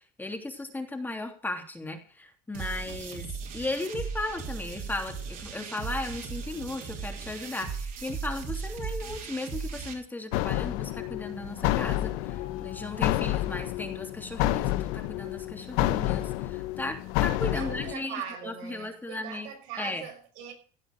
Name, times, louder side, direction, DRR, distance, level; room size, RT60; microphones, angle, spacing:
voice 1, 0.2-3.3 3.5-19.5 19.8-20.0, left 2 dB, 10° left, 3.1 m, -36 dB
sound 1, 2.5-9.9, right 5 dB, 55° right, 4.7 m, -37 dB
sound 2, 10.3-17.9, left 15 dB, 85° left, 1.0 m, -29 dB
sound 3, 12.3-13.8, left 11 dB, 60° left, 5.2 m, -44 dB
voice 2, 17.5-20.5, right 8 dB, 85° right, 5.9 m, -40 dB
16.5 x 7.9 x 6.7 m
supercardioid pair, 110°, 17 cm